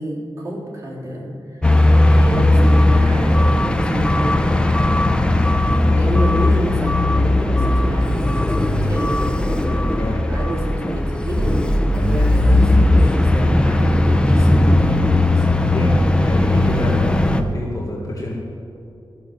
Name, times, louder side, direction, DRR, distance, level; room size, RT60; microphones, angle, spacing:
voice 1, 0.0-4.8 5.9-10.0 10.3-15.5, right 1 dB, 35° right, -4 dB, 3.6 m, -29 dB
sound 1, 1.6-17.4, left 1 dB, 10° left, 0.7 m, -16 dB
voice 2, 15.7-18.3, left 1 dB, 40° left, -3 dB, 1.8 m, -27 dB
14.0 x 6.9 x 8.5 m, 2.8 s
wide cardioid pair, 105°, 9 cm